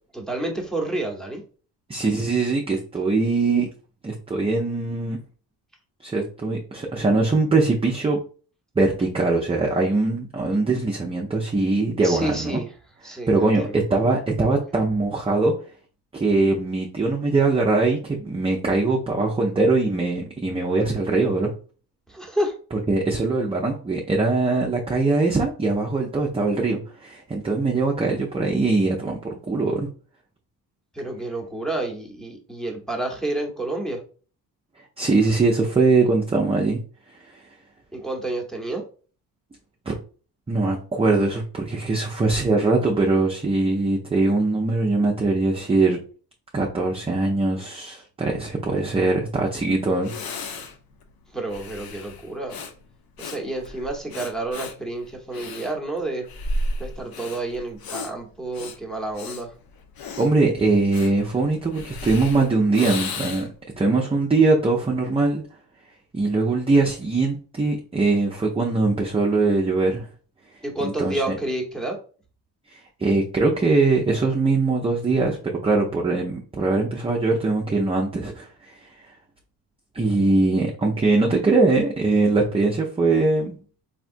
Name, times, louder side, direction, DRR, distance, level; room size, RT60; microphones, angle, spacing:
voice 1, 0.1-1.4 12.0-12.7 13.0-13.7 22.1-22.5 30.9-34.0 37.9-38.8 51.3-52.6 53.2-56.2 56.8-59.5 70.6-72.0, right 2 dB, ahead, 0 dB, 0.9 m, -29 dB
voice 2, 1.9-3.7 4.0-5.2 6.0-8.2 8.8-12.6 13.1-15.5 16.1-21.5 22.9-29.9 35.0-36.8 39.9-40.0 40.5-46.0 46.5-50.6 60.2-63.5 63.8-65.4 66.1-70.1 70.8-71.2 72.7-75.4 75.6-78.9 79.9-83.6, right 3 dB, 15° right, -1 dB, 0.5 m, -22 dB
Breathing, 49.6-49.7 50.0-63.7, left 2 dB, 60° left, 0.7 m, -34 dB
3.2 x 2.8 x 2.5 m, 0.39 s
cardioid pair, 80°, 42 cm